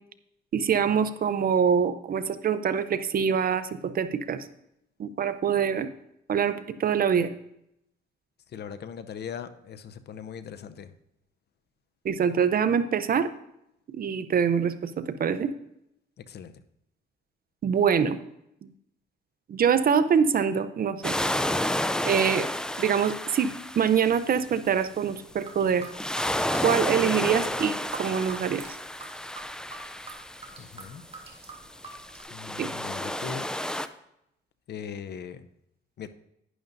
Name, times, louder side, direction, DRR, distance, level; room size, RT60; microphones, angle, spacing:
voice 1, 0.5-4.4 5.0-5.9 6.3-7.3 12.0-13.3 13.9-15.5 17.6-18.2 19.5-21.1 22.0-22.5 22.8-25.9 26.6-28.7 32.6-32.7, right 7 dB, 45° right, 12 dB, 0.6 m, -24 dB
voice 2, 8.5-10.9 16.3-16.5 30.6-31.0 32.3-33.5 34.7-35.5 36.0-36.1, left 7 dB, 55° left, 11 dB, 0.7 m, -39 dB
sound 1, 21.0-24.8 25.8-30.8 31.7-33.9, left 1 dB, 5° left, 0.4 m, -31 dB
sound 2, 25.3-32.2, right 4 dB, 30° right, 2.1 m, -46 dB
11.0 x 10.5 x 2.6 m, 0.80 s
cardioid pair, 90°, 20 cm